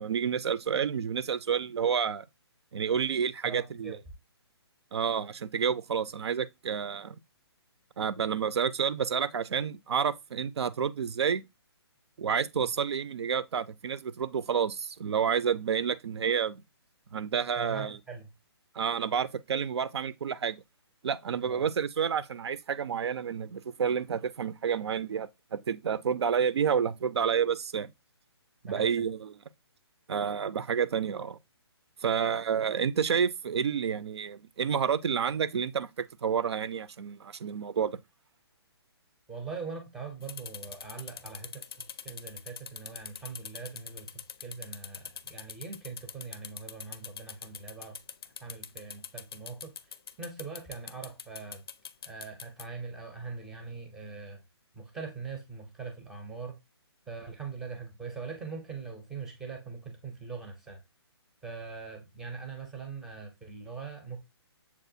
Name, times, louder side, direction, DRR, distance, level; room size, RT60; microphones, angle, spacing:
voice 1, 0.0-2.3 2.7-4.0 4.9-7.2 8.0-11.4 12.2-16.6 17.1-18.0 18.8-20.6 21.0-27.9 28.6-29.3 30.1-31.4 32.0-35.9 36.2-38.0, right 7 dB, 75° right, 0.4 m, -29 dB
voice 2, 3.4-4.0 17.6-18.3 21.5-21.7 28.6-29.1 39.3-48.0 48.4-49.7 50.2-51.6 52.0-54.4 54.7-56.6 57.1-60.8 61.4-64.2, right 5 dB, ahead, 0.4 m, -42 dB
sound 1, 40.2-52.6, left 7 dB, 60° left, 0.4 m, -43 dB
7.0 x 2.4 x 2.6 m
hypercardioid pair, 165°, 14 cm